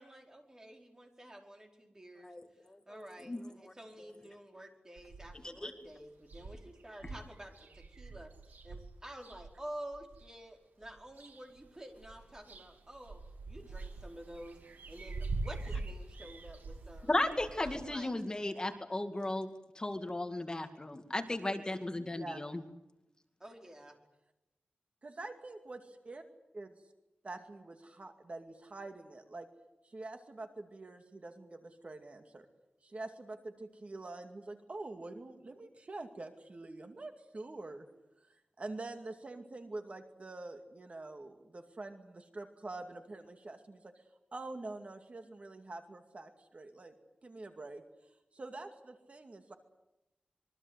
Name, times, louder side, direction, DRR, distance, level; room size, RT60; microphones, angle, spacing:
voice 1, 0.0-2.3 2.9-13.2 13.5-14.6 14.9-17.2 17.6-18.2 23.4-24.0, right 1 dB, 20° right, 3 dB, 4.9 m, -50 dB
voice 2, 2.9-3.5 5.4-5.7 17.1-19.5 19.8-22.6, left 2 dB, 25° left, 6 dB, 2.1 m, -35 dB
sound 1, 5.0-5.6 5.9-6.0 6.2-10.3 10.8-11.7 11.9-17.8, right 3 dB, 80° right, 2.7 m, -44 dB
voice 3, 25.0-26.2 26.5-26.7 27.2-29.5 29.8-32.5 32.8-37.9 38.6-44.0 44.3-46.9 47.2-47.8 48.3-49.6, right 2 dB, 45° right, 6 dB, 2.3 m, -46 dB
26.0 x 23.5 x 8.2 m, 0.93 s
wide cardioid pair, 105°, 3 cm